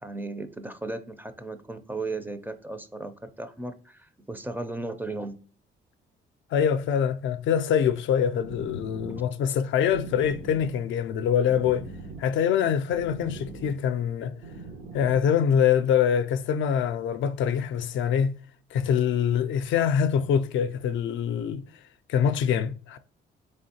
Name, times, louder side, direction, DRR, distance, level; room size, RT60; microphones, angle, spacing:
voice 1, 0.0-5.4 9.1-9.2, right 2 dB, 10° right, 0.4 m, -36 dB
voice 2, 6.5-11.9 12.2-14.3 14.9-18.3 18.7-21.6 22.1-23.0, left 8 dB, 75° left, 0.4 m, -24 dB
sound 1, 8.0-15.3, right 2 dB, 80° right, 0.9 m, -43 dB
3.7 x 3.4 x 2.7 m
cardioid pair, 90°, 20 cm